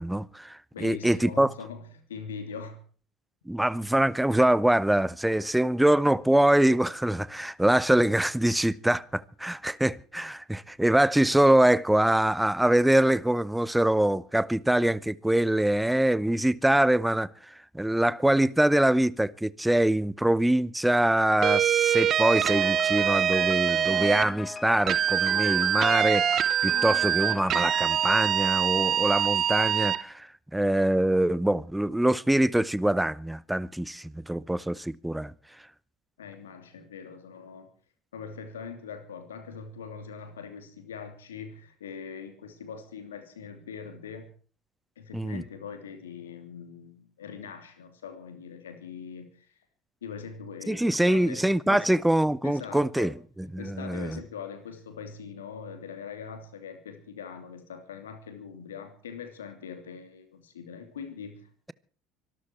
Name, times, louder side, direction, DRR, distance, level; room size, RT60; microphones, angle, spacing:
voice 1, 0.0-1.5 3.5-17.3 17.7-30.3 30.5-35.3 45.1-45.4 50.7-54.2, right 1 dB, 5° right, 0.9 m, -24 dB
voice 2, 0.7-2.8 36.2-37.7 38.1-44.3 45.0-49.5 50.0-51.9 52.4-53.1 53.6-61.7, left 6 dB, 75° left, 2.9 m, -42 dB
sound 1, 21.4-24.3 24.9-30.0, right 10 dB, 45° right, 1.0 m, -24 dB
Piano, 22.4-29.3, left 5 dB, 30° left, 1.4 m, -40 dB
24.5 x 13.0 x 4.6 m
figure-of-eight pair, 65°, 0 cm